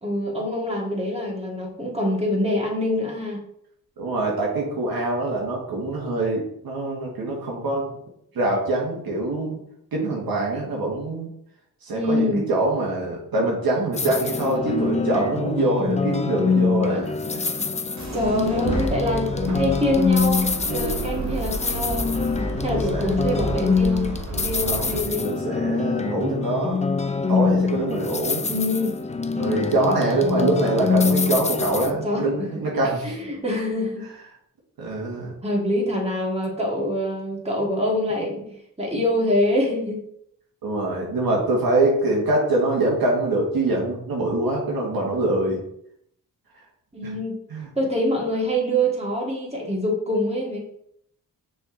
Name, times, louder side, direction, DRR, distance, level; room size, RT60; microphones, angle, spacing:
voice 1, 0.0-3.5 11.9-12.5 16.9-17.0 17.3-17.6 18.1-22.1 22.6-25.4 28.5-29.0 31.9-32.5 33.0-34.1 35.4-40.0 46.9-47.4 47.8-50.6, left 1 dB, 15° right, -2 dB, 2.1 m, -25 dB
voice 2, 4.0-7.9 8.3-9.6 9.9-11.3 11.8-17.1 22.6-23.1 24.6-26.8 27.3-28.4 29.4-33.2 34.8-35.4 40.6-45.6 47.0-47.1 47.5-47.7, right 2 dB, 75° right, -2 dB, 1.7 m, -24 dB
sound 1, 13.9-31.9, left 4 dB, 20° left, 0.5 m, -25 dB
sound 2, 18.0-25.0, right 2 dB, 50° right, 1.5 m, -31 dB
6.0 x 4.1 x 3.9 m, 0.71 s
cardioid pair, 60°, 36 cm